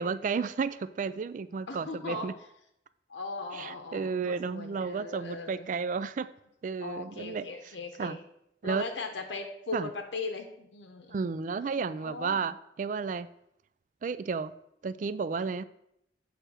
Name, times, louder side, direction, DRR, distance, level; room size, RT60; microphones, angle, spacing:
voice 1, 0.0-2.3 3.5-6.3 6.6-7.7 8.0-8.2 8.6-8.8 9.7-9.9 11.1-13.3 14.0-14.5 14.8-15.6, right 5 dB, 45° right, 15 dB, 0.3 m, -32 dB
voice 2, 1.7-2.3 3.1-5.7 6.8-8.2 8.6-11.3 12.0-12.5, left 3 dB, 85° left, 4 dB, 0.8 m, -39 dB
7.9 x 3.3 x 6.0 m, 0.79 s
head